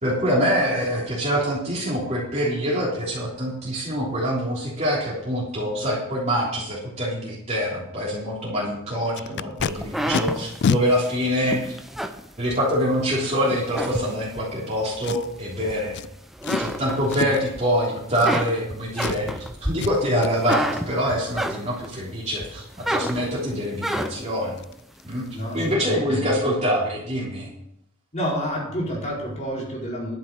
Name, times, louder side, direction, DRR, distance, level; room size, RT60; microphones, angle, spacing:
voice 1, 0.0-11.7 12.4-16.0 16.6-19.3 19.6-24.6 25.0-25.2 25.5-27.5, equal, 30° right, -6 dB, 3.4 m, -25 dB
Packing tape duct tape, 9.1-9.7 10.1-10.2 10.6-10.8 11.6-11.7 15.0-15.5 15.9-16.1 16.4-16.7 17.1-17.5 18.1-18.7 18.9-19.4 19.8-19.9 20.2-20.6 23.6-23.7 24.1-24.2 24.6-24.7 25.0-25.3 25.5-25.6, left 6 dB, 50° left, 0.3 m, -27 dB
sound 1, 9.6-13.0 13.4-14.5 15.1-16.0 16.3-17.6 17.9-22.0 22.4-24.4, equal, ahead, 0.8 m, -29 dB
voice 2, 25.3-26.3 28.1-30.2, equal, 35° left, -4 dB, 4.9 m, -29 dB
12.0 x 7.3 x 6.7 m, 0.76 s
head